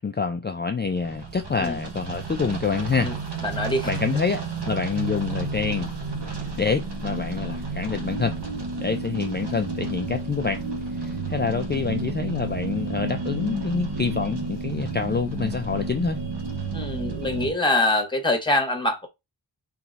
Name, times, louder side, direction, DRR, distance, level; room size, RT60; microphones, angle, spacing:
voice 1, 0.0-3.1 3.8-5.9 6.6-8.4 8.8-10.6 11.0-16.2, left 5 dB, 25° left, 0.3 m, -27 dB
sound 1, 0.9-17.5, right 3 dB, 60° right, 1.3 m, -31 dB
voice 2, 3.4-3.9 16.7-19.1, left 1 dB, 10° left, 1.3 m, -24 dB
3.4 x 3.1 x 3.9 m
wide cardioid pair, 90°, 46 cm